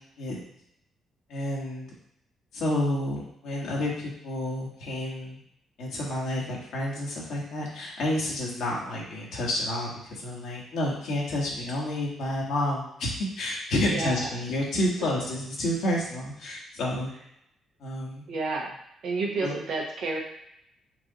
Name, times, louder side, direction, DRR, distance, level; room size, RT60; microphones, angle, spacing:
voice 1, 1.3-1.9 2.5-5.4 5.8-17.1 17.8-18.2 19.4-19.5, left 1 dB, 70° left, -3 dB, 1.4 m, -30 dB
voice 2, 13.7-14.3 18.3-18.8 19.0-20.2, right 3 dB, 70° right, -1 dB, 1.1 m, -30 dB
4.6 x 2.6 x 3.9 m, 0.78 s
hypercardioid pair, 50°, 0 cm